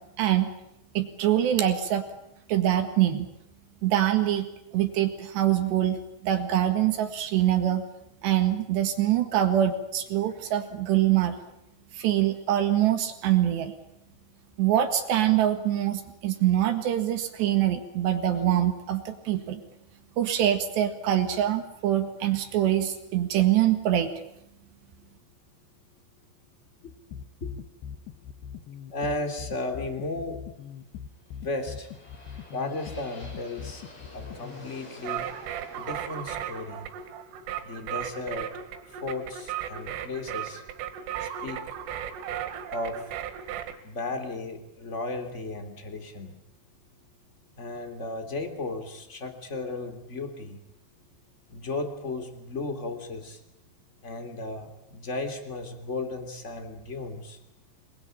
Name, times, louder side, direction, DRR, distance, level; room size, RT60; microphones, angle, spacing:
voice 1, 0.2-0.5 1.0-2.0 2.5-3.3 3.8-4.5 4.7-6.0 6.2-7.8 8.2-11.4 11.9-13.7 14.6-19.6 20.2-24.1, right 12 dB, 70° right, 7 dB, 3.7 m, -24 dB
sound 1, 27.1-34.7, left 8 dB, 70° left, 3.2 m, -41 dB
voice 2, 28.9-30.4 31.4-31.9 32.5-33.8 34.1-35.3 35.8-36.9 37.6-38.5 38.9-40.6 41.2-41.7 42.7-43.2 43.8-46.3 47.6-50.6 51.5-53.4 54.0-57.4, left 2 dB, 20° left, 6 dB, 2.5 m, -35 dB
sound 2, 31.1-39.1, left 1 dB, 50° left, 9.9 m, -50 dB
sound 3, 35.0-43.8, right 10 dB, 90° right, 4.2 m, -36 dB
27.5 x 21.0 x 8.9 m, 0.80 s
omnidirectional pair, 5.6 m